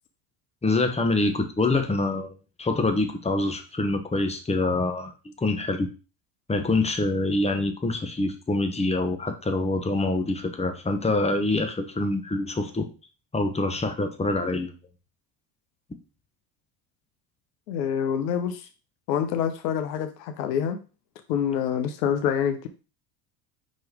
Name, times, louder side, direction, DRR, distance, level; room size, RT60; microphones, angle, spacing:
voice 1, 0.6-5.1 5.4-5.9 6.5-12.9 13.3-14.7, left 2 dB, 15° left, 6 dB, 1.2 m, -25 dB
voice 2, 17.7-18.7 19.1-20.8 21.3-22.7, left 8 dB, 80° left, 8 dB, 1.0 m, -26 dB
4.8 x 4.3 x 4.7 m, 0.33 s
supercardioid pair, 90°, 48 cm